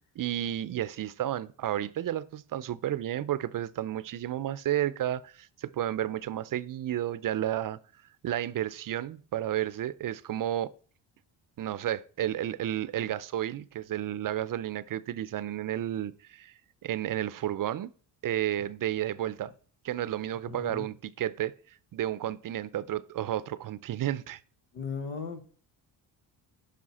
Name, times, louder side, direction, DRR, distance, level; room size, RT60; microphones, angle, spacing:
voice 1, 0.2-7.8 8.2-10.7 11.6-16.5 16.8-17.9 18.2-19.5 19.8-21.5 21.9-24.4, right 12 dB, 45° right, 0.6 m, -32 dB
voice 2, 20.5-20.8 24.7-25.4, left 5 dB, 90° left, 1.5 m, -36 dB
7.6 x 5.4 x 4.1 m
cardioid pair, 80°, 45 cm